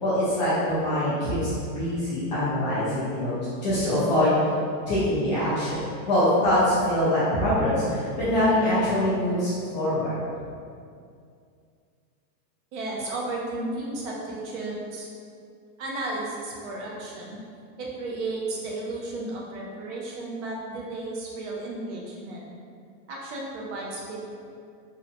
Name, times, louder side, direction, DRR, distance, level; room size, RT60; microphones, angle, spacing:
voice 1, 0.0-3.3 3.6-4.3 4.9-10.2, left 1 dB, 30° left, -11 dB, 0.3 m, -24 dB
voice 2, 12.7-15.1 15.8-17.4 17.8-22.5 23.1-24.3, right 2 dB, 45° right, -3 dB, 0.4 m, -33 dB
2.7 x 2.1 x 2.6 m, 2.3 s
supercardioid pair, 150°, 50 cm